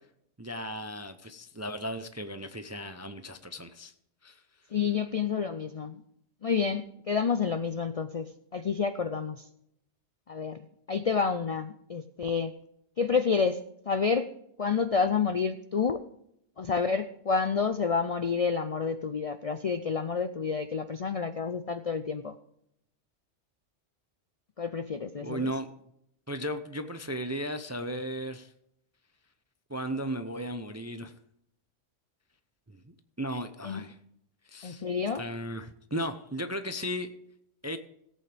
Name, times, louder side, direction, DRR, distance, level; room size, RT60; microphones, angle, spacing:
voice 1, 0.4-3.9 4.2-4.4 25.2-25.7 26.3-28.5 29.7-31.1 32.7-34.0 34.5-34.8 35.1-37.1 37.6-37.8, equal, 25° right, 9 dB, 0.4 m, -35 dB
voice 2, 4.7-6.0 6.4-9.4 10.3-10.6 10.9-12.5 13.0-14.3 14.6-16.0 16.6-22.3 24.6-25.5 33.6-33.8 34.6-35.2, left 5 dB, 55° left, 10 dB, 0.4 m, -29 dB
17.5 x 8.5 x 3.4 m, 0.75 s
omnidirectional pair, 1.2 m